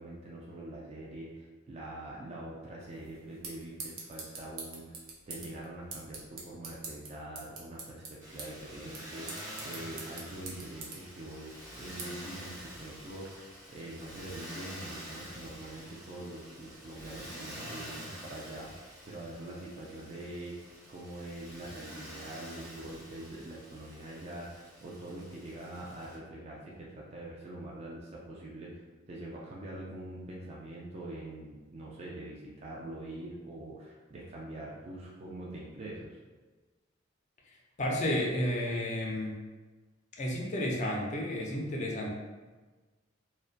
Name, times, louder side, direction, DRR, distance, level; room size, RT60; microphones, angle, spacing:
voice 1, 0.0-5.0 5.3-36.2, right 1 dB, 30° right, -4 dB, 0.3 m, -44 dB
sound 1, 2.8-13.3, right 3 dB, 80° right, 0.6 m, -47 dB
Motor vehicle (road), 8.2-26.2, equal, 15° right, 0.7 m, -47 dB
voice 2, 37.8-39.3 40.2-42.1, left 1 dB, 35° left, -1 dB, 0.4 m, -31 dB
2.6 x 2.1 x 2.4 m, 1.3 s
head